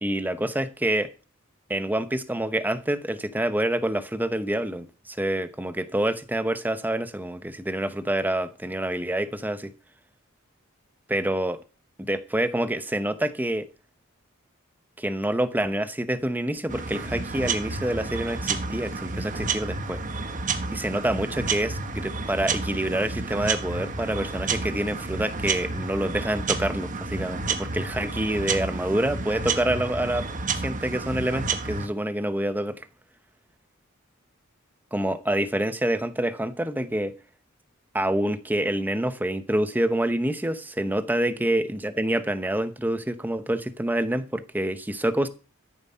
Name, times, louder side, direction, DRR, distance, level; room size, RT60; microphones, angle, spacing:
voice 1, 0.0-1.1 1.7-9.7 11.1-11.6 12.0-13.7 15.0-20.0 20.7-30.3 30.5-32.9 34.9-37.1 37.9-45.3, right 1 dB, 10° right, 0.8 m, -27 dB
sound 1, 16.7-31.9, right 4 dB, 40° right, 1.2 m, -30 dB
13.5 x 7.3 x 5.6 m
head